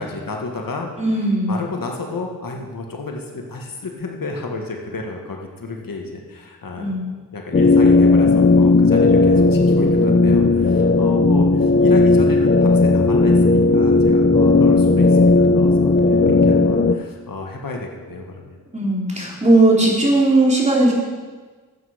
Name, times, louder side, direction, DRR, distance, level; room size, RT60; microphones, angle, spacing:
voice 1, 0.0-1.1 1.5-7.1 7.3-18.6, left 3 dB, 70° left, 1 dB, 1.7 m, -32 dB
voice 2, 1.0-1.5 6.8-7.0 16.2-16.5 18.7-20.9, right 2 dB, 20° right, -4 dB, 3.8 m, -17 dB
sound 1, 7.5-16.9, left 3 dB, 30° left, 0.7 m, -14 dB
12.5 x 8.5 x 5.2 m, 1.4 s
cardioid pair, 65°, 35 cm